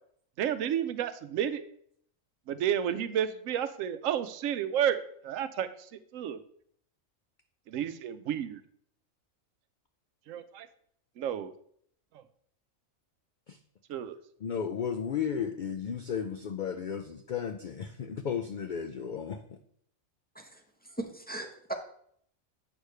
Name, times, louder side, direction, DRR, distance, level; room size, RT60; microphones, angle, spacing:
voice 1, 0.4-1.6 2.5-6.4 7.7-8.6 10.3-10.7 11.2-11.5 13.9-14.2, right 9 dB, 75° right, 12 dB, 0.9 m, -31 dB
voice 2, 14.4-19.4, left 7 dB, 85° left, 8 dB, 0.4 m, -34 dB
voice 3, 20.3-21.7, right 2 dB, 10° left, 1 dB, 0.6 m, -39 dB
8.1 x 6.5 x 3.2 m, 0.65 s
omnidirectional pair, 1.4 m